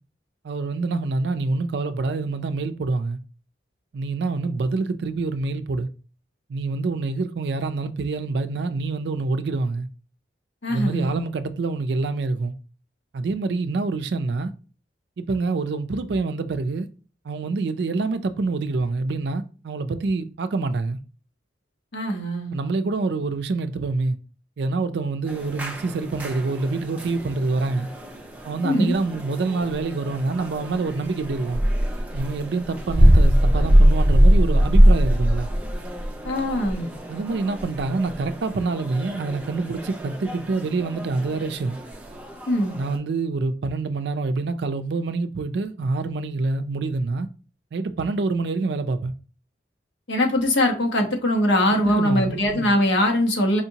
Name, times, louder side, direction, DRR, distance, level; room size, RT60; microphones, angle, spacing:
voice 1, 0.4-3.2 3.9-5.9 6.5-9.9 10.7-12.5 13.1-14.5 15.2-16.9 17.2-21.0 22.5-24.2 24.6-27.9 28.4-31.6 32.1-35.5 37.1-41.8 42.7-47.3 47.7-49.1 51.8-52.7, right 3 dB, 65° right, 0.4 m, -26 dB
voice 2, 10.6-11.2 21.9-22.6 28.6-29.0 36.2-36.9 42.5-42.7 50.1-53.6, left 1 dB, 80° left, 1.0 m, -22 dB
sound 1, 25.3-43.0, equal, 10° right, 0.5 m, -22 dB
4.9 x 2.8 x 2.7 m
head